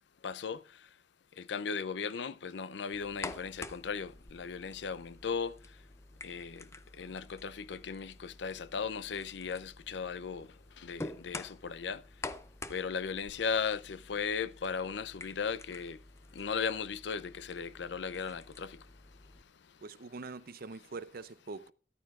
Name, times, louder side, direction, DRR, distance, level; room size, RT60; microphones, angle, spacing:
voice 1, 0.2-0.9 1.3-5.8 6.2-12.0 12.7-16.0 16.3-19.8, left 6 dB, 70° left, 0.5 m, -37 dB
sound 1, 2.9-19.4, left 2 dB, 15° left, 0.5 m, -48 dB
voice 2, 19.8-21.7, right 4 dB, 55° right, 0.6 m, -44 dB
13.5 x 11.0 x 2.4 m
head